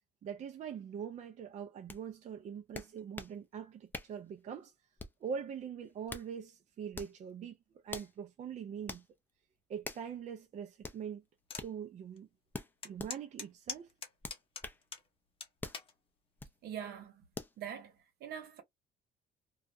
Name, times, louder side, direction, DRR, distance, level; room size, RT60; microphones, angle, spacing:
voice 1, 0.2-4.7 5.2-7.6 7.8-9.1 9.7-11.2 11.6-12.3 12.8-13.9, right 7 dB, 45° right, 0.5 m, -43 dB
sound 1, 1.9-2.0 2.7-3.4 3.9-4.2 5.0-5.3 5.9-6.3 6.9-7.2 7.9-8.1 8.9-9.1 9.8-10.1 10.8-11.0 11.5-11.7 12.5-13.1 14.2-14.8 15.6-15.8 16.4-16.6 17.3-17.6, left 3 dB, 10° left, 0.5 m, -44 dB
sound 2, 11.5-11.7 12.2-12.3 12.8-15.1 15.4-15.9 16.6-16.9, left 5 dB, 35° left, 0.8 m, -43 dB
voice 2, 16.6-17.3 17.6-18.6, right 9 dB, 70° right, 1.0 m, -44 dB
2.4 x 2.1 x 2.5 m
cardioid pair, 110°, 17 cm